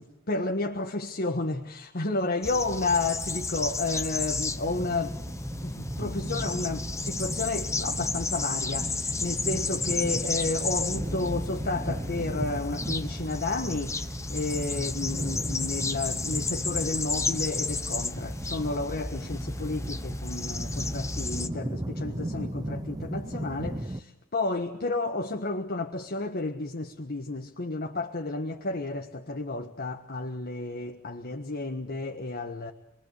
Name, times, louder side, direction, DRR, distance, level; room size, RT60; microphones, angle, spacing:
voice 1, 0.0-5.2 5.6-32.7, left 3 dB, 50° left, 1.6 m, -31 dB
sound 1, 2.4-21.5, left 3 dB, 15° left, 1.2 m, -32 dB
sound 2, 4.7-24.0, right 1 dB, 20° right, 1.0 m, -37 dB
28.5 x 22.5 x 8.4 m
head